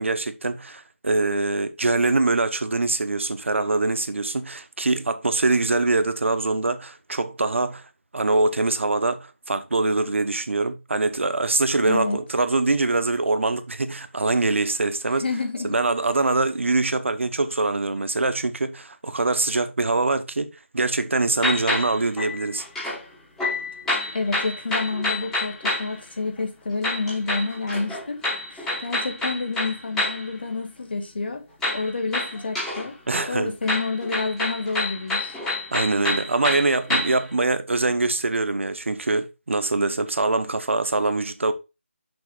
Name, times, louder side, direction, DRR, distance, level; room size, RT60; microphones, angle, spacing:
voice 1, 0.0-7.8 8.1-15.2 15.6-22.6 33.1-33.5 35.7-41.5, right 3 dB, 65° right, 1.0 m, -23 dB
voice 2, 11.9-12.2 15.2-15.8 24.1-31.4 31.7-33.0 33.3-35.4, left 3 dB, 50° left, 1.7 m, -29 dB
sound 1, 21.4-23.0 23.4-25.9 26.8-30.3 31.6-32.9 33.1-37.3, left 2 dB, 5° left, 1.0 m, -28 dB
6.3 x 6.1 x 3.2 m
figure-of-eight pair, 175°, 7 cm